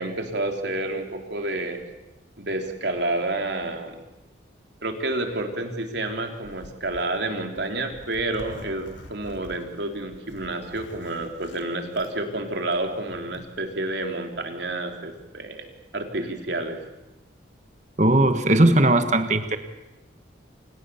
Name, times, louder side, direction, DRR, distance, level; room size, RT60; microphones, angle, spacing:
voice 1, 0.0-1.8 2.4-4.0 4.8-15.7 15.9-16.8, right 2 dB, 60° right, 4 dB, 3.8 m, -29 dB
Zipper (clothing), 6.2-13.5, left 1 dB, 80° left, 4.3 m, -47 dB
voice 2, 18.0-19.6, right 1 dB, 35° right, 8 dB, 1.5 m, -18 dB
30.0 x 26.5 x 7.1 m, 0.98 s
head